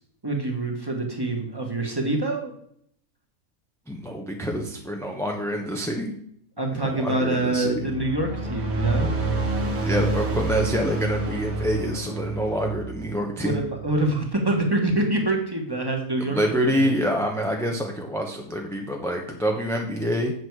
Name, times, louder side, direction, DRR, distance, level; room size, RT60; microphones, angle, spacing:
voice 1, 0.2-2.5 6.6-9.1 13.4-16.9, right 2 dB, 15° right, 2 dB, 1.4 m, -26 dB
voice 2, 3.9-6.1 6.7-7.8 9.8-13.6 16.3-20.3, equal, 5° left, 1 dB, 0.6 m, -26 dB
sound 1, 7.7-14.3, right 2 dB, 50° right, 1.6 m, -28 dB
8.1 x 6.2 x 4.6 m, 0.68 s
omnidirectional pair, 1.5 m